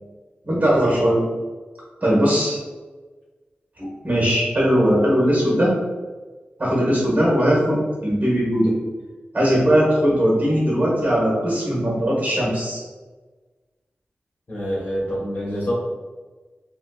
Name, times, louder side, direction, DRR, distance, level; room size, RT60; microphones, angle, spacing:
voice 1, 0.4-1.2 2.0-2.6 3.8-5.7 6.6-8.7 9.3-12.8, equal, 40° right, -4 dB, 1.4 m, -19 dB
voice 2, 14.5-15.7, equal, 50° left, -7 dB, 1.5 m, -26 dB
3.2 x 3.0 x 2.4 m, 1.3 s
wide cardioid pair, 65°, 4 cm